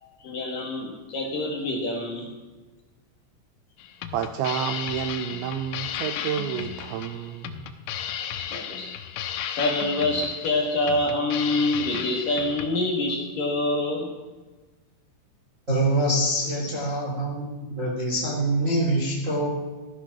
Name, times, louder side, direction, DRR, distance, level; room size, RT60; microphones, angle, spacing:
voice 1, 0.0-2.3 8.5-8.9 9.6-14.1, left 2 dB, 55° left, 0 dB, 2.7 m, -26 dB
sound 1, 3.8-12.7, left 9 dB, 80° left, 3.4 m, -34 dB
voice 2, 4.1-7.7, right 9 dB, 90° right, 8 dB, 2.6 m, -30 dB
voice 3, 15.7-17.4 17.7-19.5, right 1 dB, 35° right, -2 dB, 1.2 m, -24 dB
17.0 x 12.0 x 6.1 m, 1.3 s
omnidirectional pair, 6.0 m